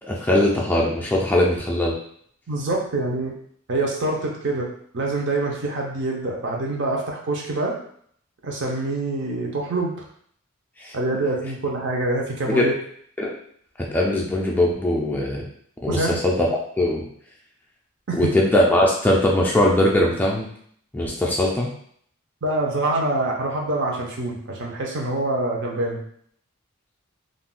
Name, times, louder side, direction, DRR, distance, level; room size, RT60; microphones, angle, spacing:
voice 1, 0.0-1.9 10.8-10.9 12.5-12.7 13.2-13.3 13.8-15.4 15.8-16.5 16.8-17.1 18.1-20.5 20.9-21.7, left 1 dB, 10° left, -3 dB, 0.4 m, -20 dB
voice 2, 2.5-3.3 3.7-4.7 4.9-7.7 8.4-10.0 10.9-12.7 15.9-16.2 18.1-18.3 22.4-26.0, right 2 dB, 55° right, 0 dB, 0.7 m, -25 dB
2.5 x 2.2 x 3.7 m, 0.63 s
head